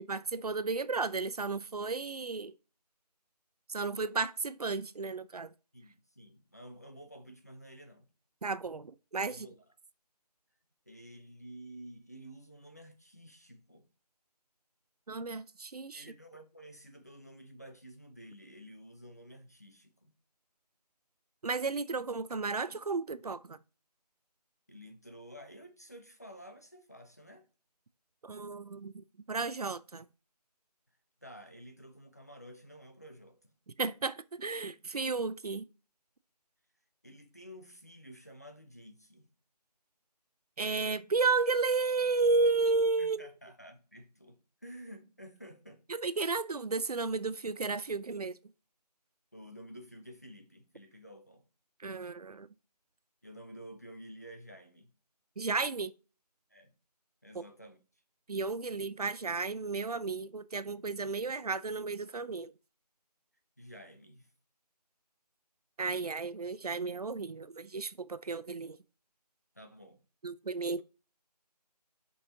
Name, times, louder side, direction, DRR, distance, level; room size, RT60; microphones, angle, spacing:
voice 1, 0.0-2.5 3.7-5.5 8.4-9.5 15.1-16.1 21.4-23.6 28.2-30.0 33.7-35.6 40.6-43.3 45.9-48.4 51.8-52.5 55.4-55.9 57.3-57.4 58.3-62.5 65.8-68.8 70.2-70.8, right 4 dB, 65° right, 0.5 m, -33 dB
voice 2, 5.7-8.1 9.3-9.6 10.9-13.9 15.9-20.1 24.7-27.5 31.2-33.5 37.0-39.3 43.0-45.8 49.3-51.4 53.2-54.9 56.5-56.7 57.2-57.8 63.6-64.3 69.5-70.0, equal, 25° left, 0.5 m, -51 dB
9.4 x 5.4 x 2.8 m
figure-of-eight pair, 170°, 21 cm